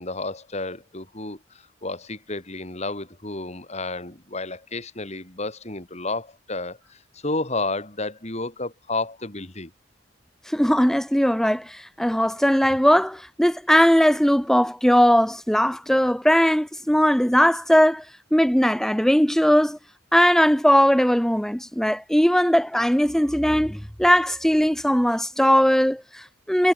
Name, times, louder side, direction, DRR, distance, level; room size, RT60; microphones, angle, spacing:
voice 1, 0.0-1.4 1.8-9.7, left 2 dB, 35° left, 4.0 m, -31 dB
voice 2, 10.5-18.0 18.3-19.8 20.1-26.7, equal, ahead, 0.8 m, -19 dB
head